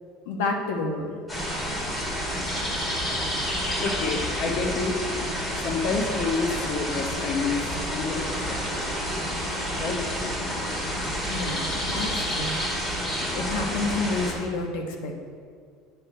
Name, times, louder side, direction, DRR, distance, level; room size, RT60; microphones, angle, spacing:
voice 1, 0.3-1.1 11.3-12.5 13.3-15.1, left 3 dB, 85° left, 3 dB, 1.1 m, -29 dB
sound 1, 1.3-14.3, equal, 20° left, 2.1 m, -29 dB
voice 2, 3.8-4.9 5.5-8.6 9.8-10.0, left 4 dB, 45° left, 3 dB, 0.9 m, -28 dB
9.7 x 4.7 x 5.5 m, 2.1 s
supercardioid pair, 125°, 0 cm